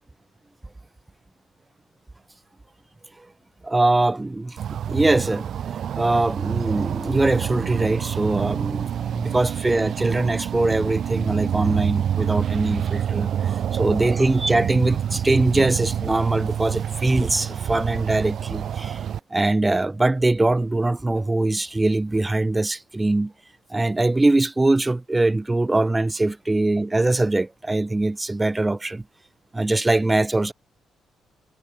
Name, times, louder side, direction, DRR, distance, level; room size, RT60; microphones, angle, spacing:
voice 1, 3.6-5.5 6.0-19.0 19.3-23.3 23.7-29.0 29.5-30.5, right 2 dB, 15° right, 4.5 m, -22 dB
sound 1, 4.6-19.2, right 9 dB, 65° right, 1.2 m, -27 dB
cardioid pair, 90°, 0 cm